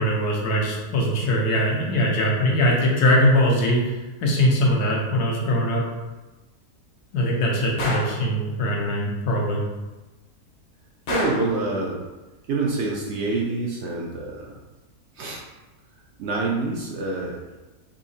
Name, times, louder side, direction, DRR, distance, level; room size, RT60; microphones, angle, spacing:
voice 1, 0.0-5.8 7.1-9.6, equal, 85° left, -2 dB, 1.3 m, -21 dB
Gunshot gunfire, 7.8-8.2 11.1-11.5, left 1 dB, 55° left, 0.9 m, -27 dB
voice 2, 11.1-12.0 12.5-14.5 15.2-15.4 16.2-17.4, right 3 dB, 70° right, -2 dB, 0.6 m, -26 dB
4.1 x 2.8 x 2.7 m, 1.1 s
omnidirectional pair, 1.6 m